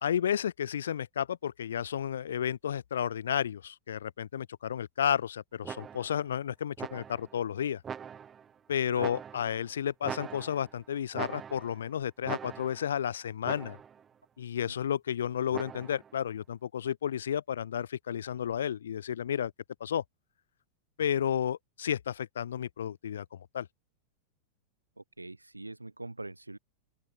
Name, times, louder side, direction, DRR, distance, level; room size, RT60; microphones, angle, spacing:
voice 1, 0.0-7.8 8.7-13.8 14.4-19.5 19.8-20.0 21.0-23.7, left 9 dB, 65° left, 0.8 m, -32 dB
sound 1, 5.6-6.2 6.8-7.4 7.8-8.5 9.0-9.6 10.0-10.8 11.1-11.9 12.2-13.0 13.4-14.0 15.5-16.1, right 7 dB, 20° right, 1.3 m, -42 dB
voice 2, 25.0-26.6, right 2 dB, 85° right, 2.3 m, -43 dB
open air
figure-of-eight pair, 90°, 0 cm